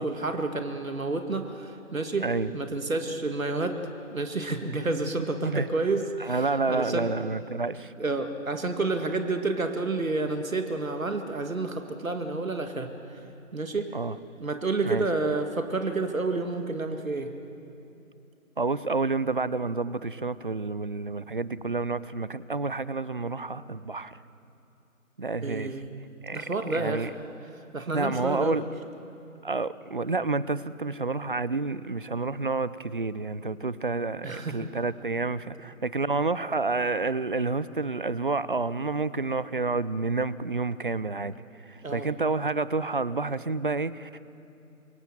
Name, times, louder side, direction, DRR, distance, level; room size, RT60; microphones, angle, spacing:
voice 1, 0.0-3.8 4.1-7.2 8.0-13.3 13.5-13.9 14.4-17.3 25.4-25.9 26.3-27.1 27.7-28.7 34.2-34.7 41.8-42.1, right 3 dB, 70° right, 6 dB, 2.1 m, -30 dB
voice 2, 6.2-7.9 13.9-14.2 14.8-15.0 18.6-24.2 25.2-25.7 26.2-26.4 26.7-27.1 27.9-28.6 29.4-41.4 41.7-44.2, right 3 dB, 40° right, 17 dB, 0.6 m, -29 dB
26.5 x 23.0 x 7.4 m, 2.8 s
figure-of-eight pair, 155°, 42 cm